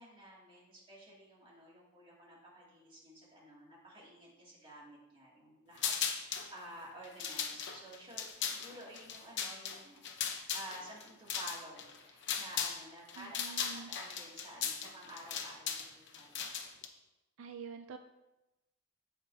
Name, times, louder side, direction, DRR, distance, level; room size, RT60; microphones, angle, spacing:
voice 1, 0.0-10.0 10.5-16.4, right 1 dB, 25° right, -5 dB, 2.3 m, -52 dB
sound 1, 5.8-6.5 7.0-12.8 13.1-16.9, left 7 dB, 55° left, 0.8 m, -38 dB
voice 2, 13.2-13.9 17.4-18.0, right 5 dB, 75° right, 6 dB, 0.4 m, -47 dB
15.0 x 5.1 x 2.7 m, 1.0 s
head